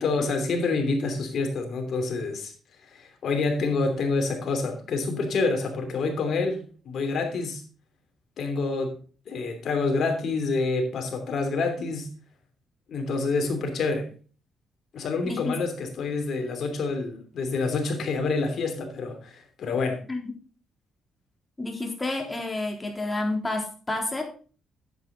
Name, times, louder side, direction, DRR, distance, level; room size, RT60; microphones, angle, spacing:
voice 1, 0.0-2.5 2.8-7.6 8.4-9.0 9.3-12.1 12.9-14.1 14.9-20.0, left 3 dB, 60° left, 4 dB, 3.2 m, -27 dB
voice 2, 21.6-24.2, left 2 dB, 20° left, 2 dB, 3.6 m, -29 dB
10.5 x 8.3 x 4.0 m, 0.38 s
cardioid pair, 90°, 0 cm